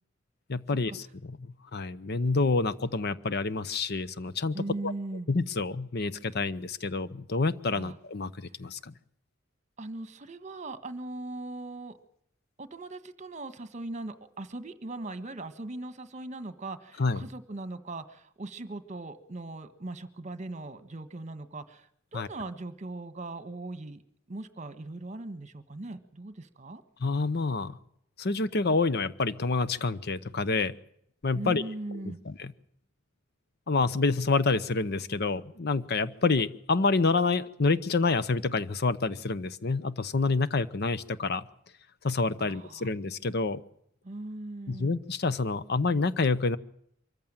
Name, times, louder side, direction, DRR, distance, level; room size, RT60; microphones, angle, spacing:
voice 1, 0.5-1.4 1.7-4.6 4.8-4.9 5.3-8.9 17.0-17.2 22.1-22.3 27.0-27.8 28.2-30.7 31.2-31.6 32.3-32.5 33.7-41.4 42.0-43.6 44.7-46.6, left 3 dB, 55° left, 15 dB, 0.8 m, -28 dB
voice 2, 4.5-5.3 7.7-8.0 9.8-11.9 12.6-24.0 24.3-26.8 31.3-32.2 42.4-42.9 44.0-44.9, right 2 dB, 35° right, 11 dB, 1.5 m, -39 dB
24.5 x 14.5 x 9.0 m, 0.72 s
head